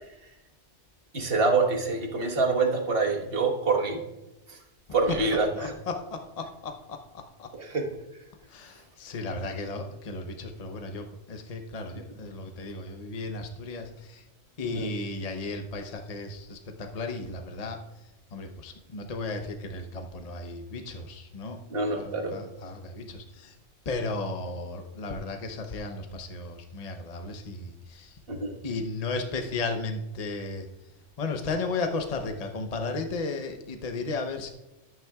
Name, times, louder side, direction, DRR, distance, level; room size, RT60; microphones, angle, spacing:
voice 1, 1.1-4.0 4.9-5.7 7.5-7.9 14.7-14.9 21.7-22.4 28.3-28.5, right 3 dB, 55° right, 2 dB, 1.7 m, -26 dB
voice 2, 5.6-7.0 7.4-7.5 8.5-14.2 14.6-17.8 18.3-21.6 21.9-23.6 23.9-28.2 28.6-30.7 31.2-34.5, left 3 dB, 35° left, 4 dB, 0.9 m, -34 dB
13.0 x 9.1 x 2.4 m, 0.94 s
omnidirectional pair, 1.2 m